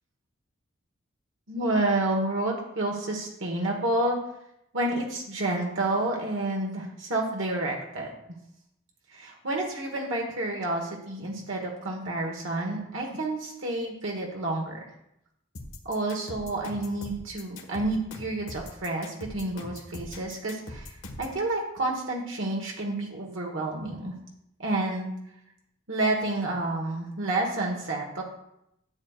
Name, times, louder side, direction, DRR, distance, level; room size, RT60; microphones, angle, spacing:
voice 1, 1.5-4.2 4.7-8.1 9.1-14.8 15.8-24.1 24.6-25.1 25.9-28.2, right 2 dB, 75° right, 0 dB, 1.3 m, -29 dB
sound 1, 15.5-21.4, left 2 dB, 80° left, 1.5 m, -41 dB
11.5 x 7.9 x 2.4 m, 0.79 s
head